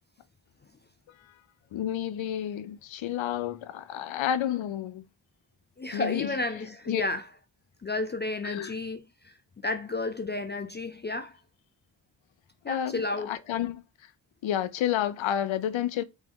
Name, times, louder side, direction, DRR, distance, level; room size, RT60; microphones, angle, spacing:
voice 1, 1.7-5.0 5.9-6.4 6.9-7.0 8.4-8.7 12.7-13.8 14.4-16.0, left 10 dB, 80° left, 0.6 m, -30 dB
voice 2, 5.8-7.2 7.8-9.3 9.6-11.4 12.6-13.4, left 2 dB, 25° left, 0.3 m, -32 dB
3.6 x 3.0 x 3.7 m
wide cardioid pair, 80°, 45 cm